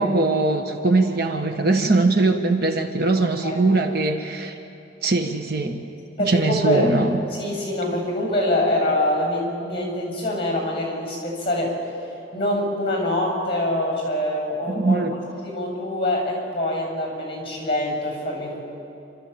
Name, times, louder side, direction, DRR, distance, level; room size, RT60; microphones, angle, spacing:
voice 1, 0.0-4.6 5.0-5.9 6.2-7.1 14.7-15.2, right 2 dB, 60° right, 5 dB, 1.4 m, -21 dB
voice 2, 6.2-6.9 7.3-11.7 12.3-15.0 15.4-18.7, left 1 dB, 30° left, 0 dB, 7.2 m, -24 dB
29.0 x 13.5 x 8.6 m, 2.9 s
head